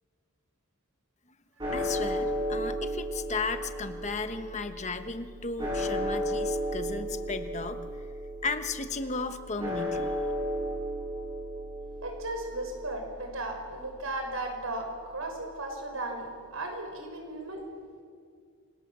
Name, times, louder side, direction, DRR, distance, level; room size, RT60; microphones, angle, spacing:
sound 1, 1.6-15.8, equal, 20° right, 7.2 m, -35 dB
voice 1, 1.7-7.8 8.4-10.1, left 4 dB, 30° left, 8 dB, 1.2 m, -35 dB
voice 2, 12.0-17.6, right 2 dB, 70° right, 4 dB, 5.8 m, -36 dB
28.5 x 26.5 x 7.5 m, 2.1 s
head